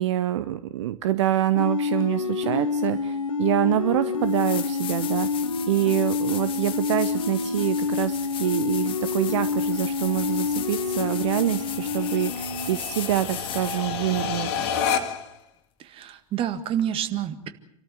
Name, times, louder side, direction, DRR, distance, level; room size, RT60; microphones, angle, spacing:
voice 1, 0.0-14.5, right 13 dB, 60° right, 13 dB, 0.9 m, -26 dB
sound 1, 1.5-12.7, left 4 dB, 85° left, 1.2 m, -27 dB
sound 2, 3.7-3.8 4.2-14.0 16.8-16.9, left 10 dB, 30° left, 1.5 m, -37 dB
sound 3, 5.1-15.4, left 7 dB, 50° left, 2.2 m, -34 dB
voice 2, 15.8-17.5, right 10 dB, 30° right, 10 dB, 1.8 m, -28 dB
28.0 x 13.5 x 7.9 m, 0.76 s
figure-of-eight pair, 90°, 17 cm